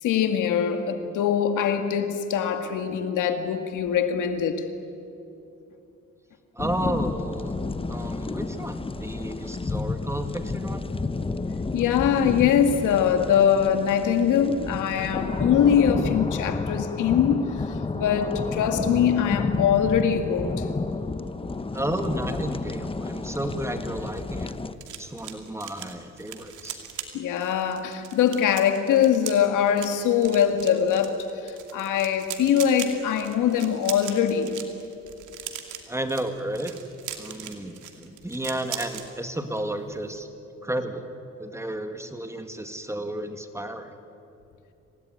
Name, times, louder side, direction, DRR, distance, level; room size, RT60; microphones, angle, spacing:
voice 1, 0.0-4.7 11.3-20.7 27.1-34.5 40.6-40.7, left 8 dB, 85° left, 7 dB, 2.2 m, -23 dB
sound 1, 6.6-24.7, left 3 dB, 20° left, 1.0 m, -31 dB
voice 2, 6.6-7.5 7.9-10.9 21.7-24.6 25.0-26.8 35.9-36.7 37.2-40.3 40.6-41.1 41.4-43.9, right 1 dB, 10° right, 7 dB, 2.2 m, -32 dB
sound 2, 23.9-39.1 39.4-39.7 39.9-40.2, right 9 dB, 80° right, 2.7 m, -40 dB
26.5 x 18.0 x 9.6 m, 2.7 s
cardioid pair, 90°, 30 cm